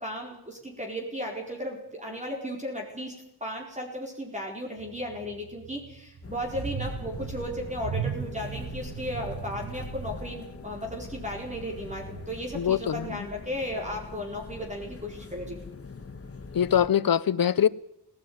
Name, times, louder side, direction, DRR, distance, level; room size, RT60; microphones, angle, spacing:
voice 1, 0.0-15.6, equal, 15° right, 4.5 m, -35 dB
sound 1, 4.8-12.3, right 7 dB, 65° right, 1.2 m, -39 dB
sound 2, 6.2-16.9, left 4 dB, 35° left, 1.6 m, -43 dB
voice 2, 12.5-13.2 16.5-17.7, left 9 dB, 60° left, 0.8 m, -23 dB
18.0 x 17.5 x 9.6 m
wide cardioid pair, 130°, 40 cm